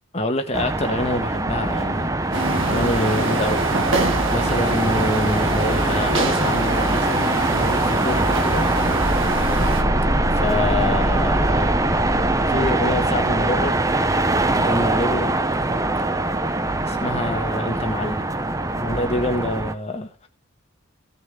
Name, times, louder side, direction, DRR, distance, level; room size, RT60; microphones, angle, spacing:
voice 1, 0.1-2.1 2.7-3.6 4.3-8.7 10.3-11.7 12.5-13.8 14.5-15.3 16.8-18.3 18.8-20.3, left 1 dB, 30° left, 1.6 m, -26 dB
sound 1, 0.5-19.7, right 2 dB, 15° right, 0.6 m, -22 dB
sound 2, 2.3-9.8, right 2 dB, 70° right, 1.8 m, -26 dB
sound 3, 8.8-13.7, equal, 35° right, 2.2 m, -27 dB
16.5 x 6.9 x 3.7 m
head